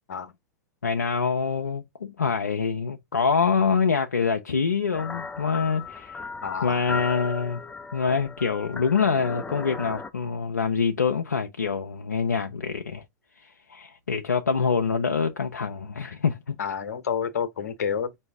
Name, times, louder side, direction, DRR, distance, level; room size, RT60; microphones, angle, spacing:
voice 1, 0.8-6.2 6.6-7.6 7.9-13.0 13.4-16.6, left 5 dB, 90° left, 0.4 m, -25 dB
sound 1, 4.9-10.1, left 4 dB, 15° left, 0.5 m, -36 dB
voice 2, 6.4-6.8 16.6-18.1, left 7 dB, 70° left, 0.8 m, -29 dB
4.5 x 2.6 x 3.3 m
figure-of-eight pair, 95°, 9 cm